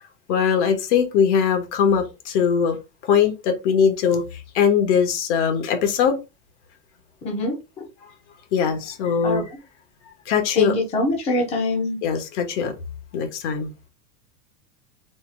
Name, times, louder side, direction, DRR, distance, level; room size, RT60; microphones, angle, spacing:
voice 1, 0.3-2.8 3.0-6.2 8.5-9.4 10.3-10.7 12.0-12.7 13.1-13.7, left 7 dB, 50° left, 1.3 m, -21 dB
voice 2, 7.2-7.6 9.2-9.4 10.6-12.0, left 2 dB, 15° left, 0.9 m, -23 dB
4.4 x 2.7 x 3.8 m
supercardioid pair, 180°, 46 cm